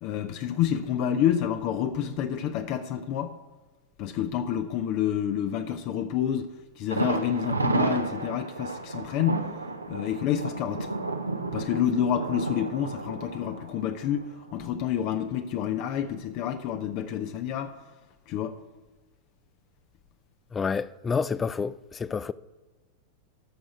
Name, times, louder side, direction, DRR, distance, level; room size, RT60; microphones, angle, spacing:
voice 1, 0.0-3.3 4.0-6.5 6.8-9.4 9.9-10.9 11.5-17.7 18.3-18.6, left 9 dB, 45° left, 0.7 m, -28 dB
Thunder, 6.9-14.7 15.0-15.1 15.5-15.6, right 3 dB, 80° right, 0.8 m, -32 dB
voice 2, 20.5-22.3, left 5 dB, 20° left, 0.3 m, -29 dB
13.0 x 6.3 x 5.1 m
figure-of-eight pair, 90°, 0 cm